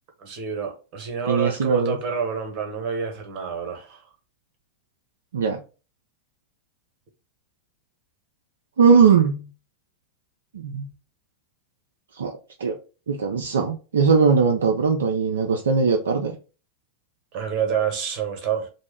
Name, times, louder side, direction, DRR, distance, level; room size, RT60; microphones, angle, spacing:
voice 1, 0.2-4.0 17.3-18.7, right 7 dB, 40° right, 0.9 m, -28 dB
voice 2, 1.3-2.0 5.3-5.6 8.8-9.5 10.5-10.9 12.1-12.8 13.1-16.4, right 5 dB, 65° right, 0.4 m, -20 dB
2.9 x 2.1 x 3.4 m
figure-of-eight pair, 90°, 0 cm